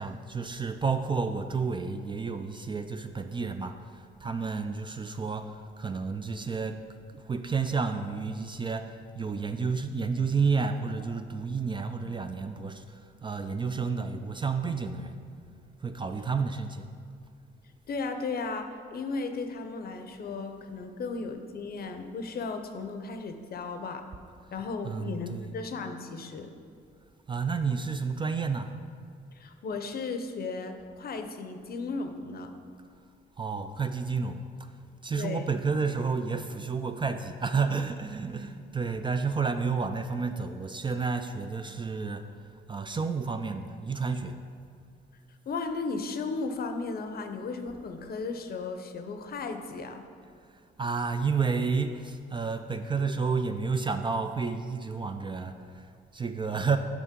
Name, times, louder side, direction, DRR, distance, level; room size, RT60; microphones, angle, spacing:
voice 1, 0.0-6.8 7.1-15.2 15.8-16.9 24.8-25.5 27.3-28.7 33.4-34.7 35.0-44.4 50.8-56.8, right 5 dB, 25° right, 7 dB, 0.3 m, -31 dB
voice 2, 17.9-24.0 24.5-26.5 29.3-32.5 35.2-35.5 45.5-50.0, left 4 dB, 50° left, 7 dB, 0.7 m, -35 dB
8.2 x 5.5 x 3.7 m, 2.3 s
cardioid pair, 90°, 20 cm